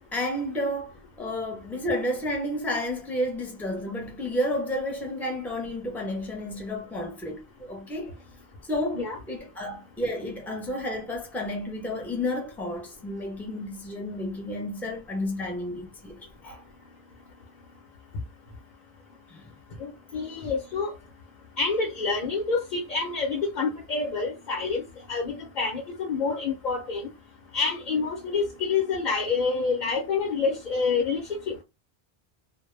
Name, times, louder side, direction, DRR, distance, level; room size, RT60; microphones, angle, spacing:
voice 1, 0.1-8.1 8.7-16.6 19.3-19.5, left 1 dB, ahead, 0.6 m, -31 dB
voice 2, 19.8-20.9 21.6-24.8 25.1-27.1 27.5-31.6, left 4 dB, 50° left, 0.7 m, -27 dB
2.1 x 2.0 x 3.1 m
omnidirectional pair, 1.1 m